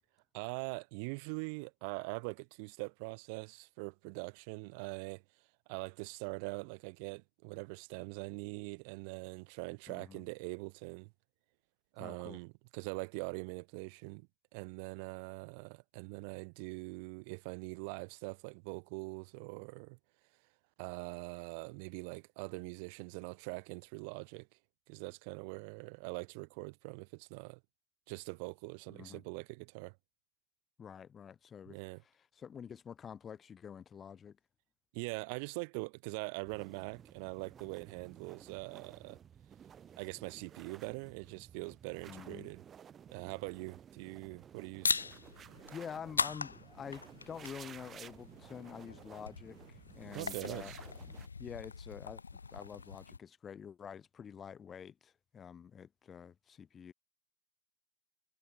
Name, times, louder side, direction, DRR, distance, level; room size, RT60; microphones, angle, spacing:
voice 1, 0.3-5.2 5.7-11.1 11.9-20.0 20.8-24.5 24.9-27.6 28.1-29.9 31.7-32.0 34.9-39.2 40.0-42.6 43.1-45.0 50.1-50.8, right 34 dB, 45° right, 0.4 m, -43 dB
voice 2, 9.9-10.2 12.0-12.4 28.9-29.2 30.8-34.4 42.1-42.5 45.7-50.7 51.4-52.2 52.5-56.9, left 7 dB, 20° left, 0.3 m, -48 dB
sound 1, 36.5-51.3, right 8 dB, 25° right, 1.0 m, -54 dB
sound 2, 44.8-53.2, left 4 dB, 75° left, 0.5 m, -40 dB
figure-of-eight pair, 90°, 0 cm